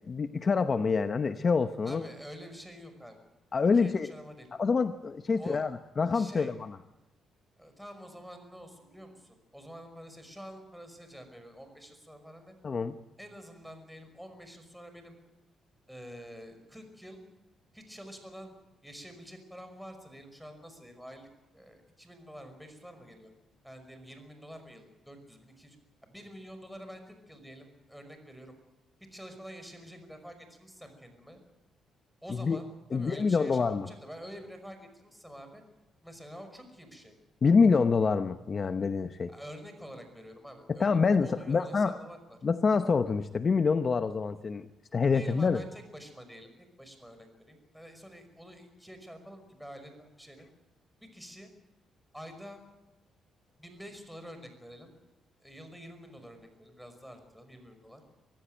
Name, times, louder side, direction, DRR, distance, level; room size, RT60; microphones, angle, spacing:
voice 1, 0.1-2.1 3.5-4.1 4.6-5.7 6.0-6.5 12.6-13.0 32.4-32.6 32.9-33.9 37.4-39.3 40.8-42.0 42.4-44.7 44.9-45.6, left 5 dB, 40° left, 10 dB, 0.9 m, -26 dB
voice 2, 1.8-3.2 3.7-4.5 5.3-5.7 6.1-6.5 7.6-12.5 13.2-15.1 15.9-17.2 17.7-18.5 18.8-23.3 23.6-25.8 26.0-28.6 29.1-31.4 32.2-35.6 36.0-37.1 39.3-42.4 45.0-50.5 51.0-51.5 52.1-52.6 53.6-54.9 55.4-58.0, equal, ahead, 7 dB, 5.6 m, -48 dB
24.0 x 15.0 x 9.2 m, 1.1 s
cardioid pair, 90°, 0 cm